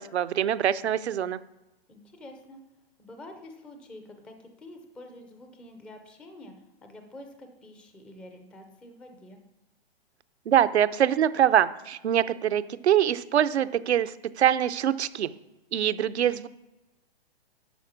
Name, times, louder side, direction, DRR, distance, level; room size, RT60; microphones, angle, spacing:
voice 1, 0.0-1.4 10.5-15.3 15.7-16.5, right 10 dB, 80° right, 13 dB, 0.7 m, -24 dB
voice 2, 1.9-2.6 3.0-6.5 6.8-9.4, left 1 dB, 5° left, 5 dB, 0.4 m, -47 dB
11.5 x 4.3 x 7.2 m, 1.0 s
hypercardioid pair, 145°, 32 cm